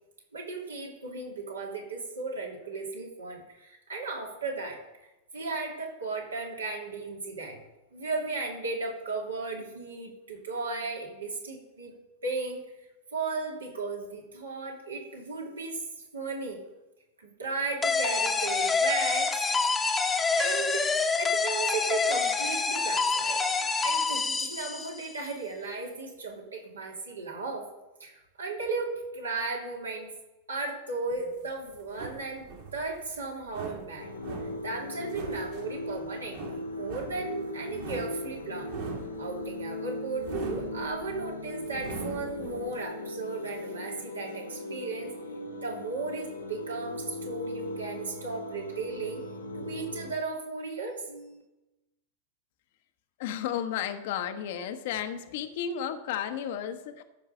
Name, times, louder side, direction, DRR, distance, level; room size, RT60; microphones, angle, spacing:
voice 1, 0.3-5.1 5.3-7.6 7.9-11.9 12.2-12.6 13.1-16.6 17.2-19.3 19.6-20.0 20.3-27.6 28.0-30.1 30.5-32.5 32.7-34.1 34.6-38.7 39.2-49.2 49.5-51.4, right 3 dB, 75° right, -1 dB, 2.8 m, -35 dB
sound 1, 17.8-25.2, left 4 dB, 15° left, 1.1 m, -27 dB
sound 2, 31.1-42.8, right 5 dB, 55° right, 3.0 m, -42 dB
sound 3, 34.0-50.1, left 1 dB, 80° left, 1.5 m, -38 dB
voice 2, 53.2-57.0, left 9 dB, 50° left, 8 dB, 1.0 m, -33 dB
13.5 x 5.8 x 5.4 m, 0.99 s
figure-of-eight pair, 90°, 0 cm